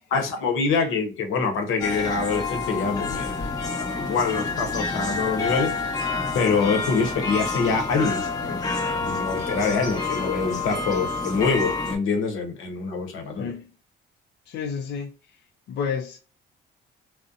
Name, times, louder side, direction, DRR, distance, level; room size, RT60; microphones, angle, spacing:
voice 1, 0.1-5.7 6.3-13.5, left 4 dB, 85° left, 0.8 m, -25 dB
sound 1, 1.8-12.0, left 3 dB, 20° left, 0.8 m, -28 dB
voice 2, 13.4-13.7 14.5-15.4 15.7-16.2, left 6 dB, 60° left, 0.4 m, -31 dB
2.6 x 2.0 x 2.4 m
cardioid pair, 90°, 20 cm